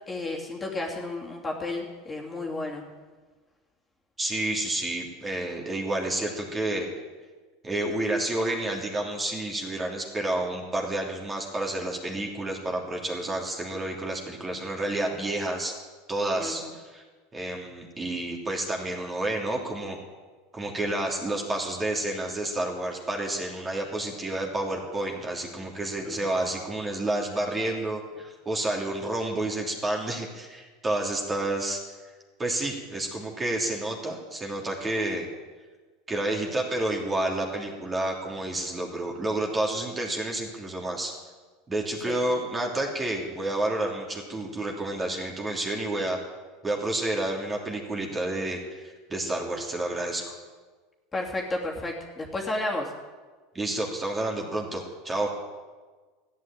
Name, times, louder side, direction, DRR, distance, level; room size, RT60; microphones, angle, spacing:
voice 1, 0.1-2.8 16.4-16.7 26.0-26.3 42.1-42.2 51.1-52.9, left 2 dB, 20° left, -1 dB, 3.0 m, -32 dB
voice 2, 4.2-6.9 7.6-15.7 16.1-17.0 17.3-20.0 20.5-31.8 32.4-35.3 36.1-41.1 41.7-46.2 46.6-50.4 53.5-55.3, right 1 dB, 20° right, 0 dB, 3.1 m, -30 dB
14.5 x 9.6 x 9.0 m, 1.4 s
hypercardioid pair, 100°, 0 cm